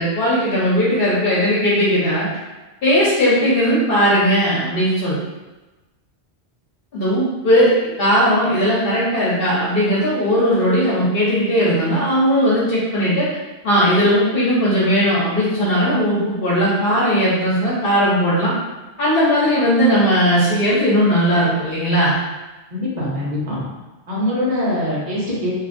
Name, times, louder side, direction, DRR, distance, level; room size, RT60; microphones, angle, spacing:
voice 1, 0.0-2.3 2.8-5.2 6.9-13.3 13.6-18.5 19.0-22.2, equal, 60° left, -7 dB, 1.0 m, -17 dB
voice 2, 22.7-23.6 24.1-25.6, left 1 dB, 45° right, -7 dB, 1.0 m, -23 dB
2.7 x 2.5 x 2.5 m, 1.1 s
omnidirectional pair, 1.1 m